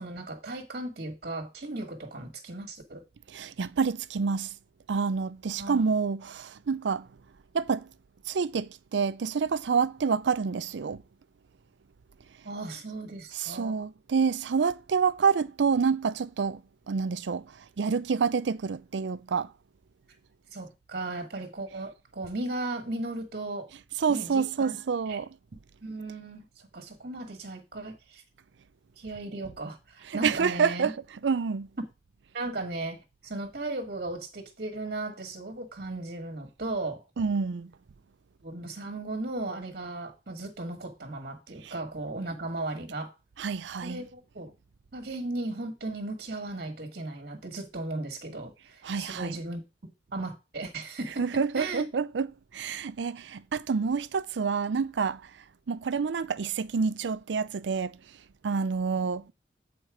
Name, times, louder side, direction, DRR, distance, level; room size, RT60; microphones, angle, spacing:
voice 1, 0.0-3.0 5.6-5.8 12.4-13.7 20.5-23.7 24.1-24.7 25.1-25.2 25.8-28.2 29.0-30.9 31.8-31.9 32.3-37.0 38.4-43.1 43.8-44.5 44.9-51.2 51.5-51.9, right 2 dB, 55° right, 1.4 m, -36 dB
voice 2, 3.3-4.5 4.9-7.1 7.5-7.9 8.3-11.0 13.3-16.6 16.9-19.5 24.0-25.3 30.1-30.9 31.2-31.7 37.2-37.7 41.6-41.7 43.4-44.0 48.8-49.4 51.2-52.3 52.5-55.3 55.7-58.0 58.4-59.3, right 5 dB, 80° right, 0.5 m, -28 dB
8.1 x 4.3 x 4.8 m
head